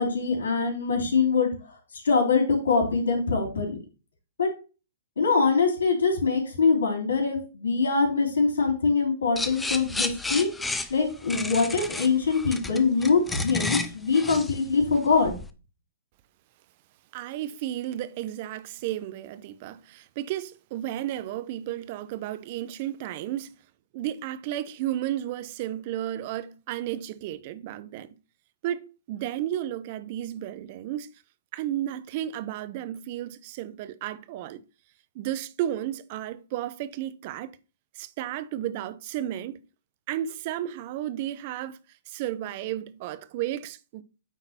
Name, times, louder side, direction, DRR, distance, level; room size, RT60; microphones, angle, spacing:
voice 1, 0.0-1.5 1.9-3.8 4.4-4.5 5.2-10.5 10.9-15.3, left 4 dB, 80° left, 3.7 m, -23 dB
sound 1, 9.4-15.5, left 3 dB, 5° left, 0.6 m, -32 dB
voice 2, 17.1-23.5 23.9-28.1 28.6-31.1 31.5-34.6 35.1-37.5 38.0-39.6 40.1-41.8 42.1-44.0, right 12 dB, 45° right, 0.8 m, -33 dB
9.1 x 3.9 x 4.4 m
hypercardioid pair, 125°, 0 cm